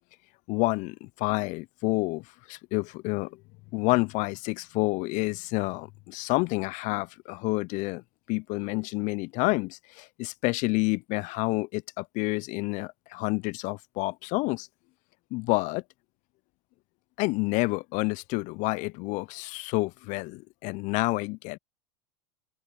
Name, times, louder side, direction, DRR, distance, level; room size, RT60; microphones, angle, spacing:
voice 1, 0.5-3.4 3.7-8.0 8.3-14.7 15.3-15.8 17.2-21.6, left 25 dB, 50° left, 0.5 m, -29 dB
open air
hypercardioid pair, 90°, 16 cm